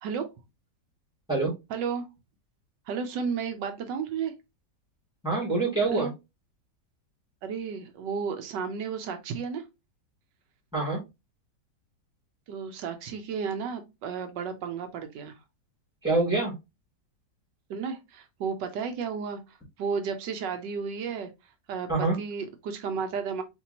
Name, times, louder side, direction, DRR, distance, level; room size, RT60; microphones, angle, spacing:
voice 1, 1.7-2.1 2.9-4.3 5.9-6.1 7.4-9.6 12.5-15.4 17.7-21.3 21.7-23.4, right 6 dB, 90° right, 7 dB, 1.5 m, -33 dB
voice 2, 5.2-6.1 10.7-11.0 16.0-16.5 21.9-22.1, right 3 dB, 5° right, -5 dB, 2.6 m, -25 dB
4.4 x 3.3 x 2.8 m, 0.23 s
omnidirectional pair, 1.9 m